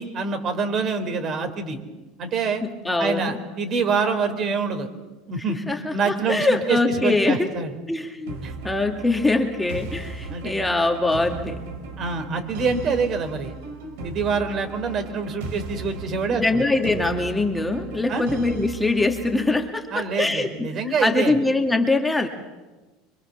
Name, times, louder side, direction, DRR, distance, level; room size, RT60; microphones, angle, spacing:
voice 1, 0.0-1.8 2.2-2.6 3.0-4.9 5.3-5.6 5.9-7.7 8.4-8.5 10.3-10.5 12.0-13.5 14.0-16.7 18.1-18.3 19.9-21.4, right 5 dB, 45° right, 7 dB, 4.1 m, -26 dB
voice 2, 2.6-3.4 5.7-7.5 7.9-8.4 8.6-11.6 16.3-20.7 21.0-22.3, left 2 dB, 5° left, 3 dB, 2.2 m, -23 dB
sound 1, 8.3-19.7, right 3 dB, 80° right, 4.4 m, -37 dB
26.0 x 24.0 x 7.1 m, 1.2 s
supercardioid pair, 105°, 0 cm